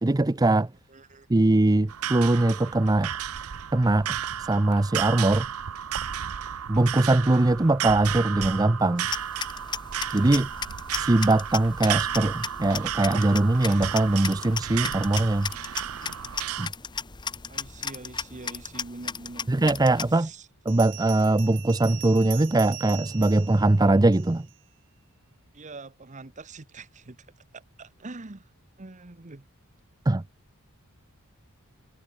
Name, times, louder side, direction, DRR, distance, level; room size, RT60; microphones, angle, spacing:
voice 1, 0.0-0.7 1.3-3.1 3.7-5.5 6.7-9.1 10.1-10.5 10.9-15.5 16.6-16.7 19.5-20.3 20.7-24.5 30.1-30.2, right 2 dB, 15° right, 0.5 m, -22 dB
voice 2, 0.9-1.3 17.5-19.8 20.1-20.5 25.5-27.2 27.5-28.5 28.8-29.4, right 3 dB, 35° right, 1.0 m, -44 dB
sound 1, 1.9-16.7, right 9 dB, 75° right, 0.7 m, -33 dB
sound 2, 9.0-20.1, left 6 dB, 20° left, 0.8 m, -36 dB
Bell, 20.7-24.6, right 16 dB, 60° right, 1.1 m, -42 dB
head